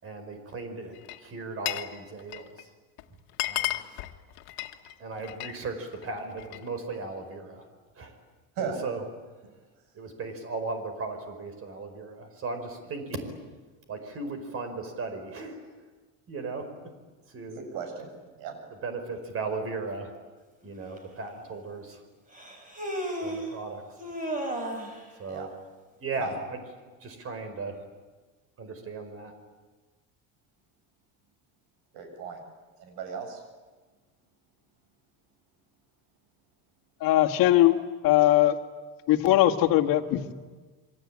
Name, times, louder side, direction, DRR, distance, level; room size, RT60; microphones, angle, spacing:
voice 1, 0.0-2.7 3.4-3.8 5.0-7.6 8.0-8.2 8.6-9.0 9.9-13.4 13.9-15.7 16.3-16.7 17.3-17.6 18.8-20.1 20.6-22.0 23.2-23.8 25.2-25.5 26.0-26.6 27.0-27.8 28.6-29.3, right 3 dB, 35° right, 8 dB, 4.9 m, -36 dB
Glass, 0.9-1.9 2.2-2.6 3.0-3.1 3.3-5.6 5.9-6.7, left 17 dB, 90° left, 1.7 m, -33 dB
voice 2, 17.5-18.1 18.4-18.6 25.3-25.5 26.2-26.3 31.9-32.4 32.8-33.4, right 6 dB, 80° right, 5 dB, 7.7 m, -36 dB
Human voice, 21.0-21.1 22.3-23.5 24.0-25.0, right 1 dB, 20° right, 5.2 m, -33 dB
voice 3, 37.0-37.8 38.0-38.6 39.1-40.3, left 14 dB, 65° left, 3 dB, 2.0 m, -20 dB
27.5 x 24.0 x 8.8 m, 1.3 s
cardioid pair, 155°, 37 cm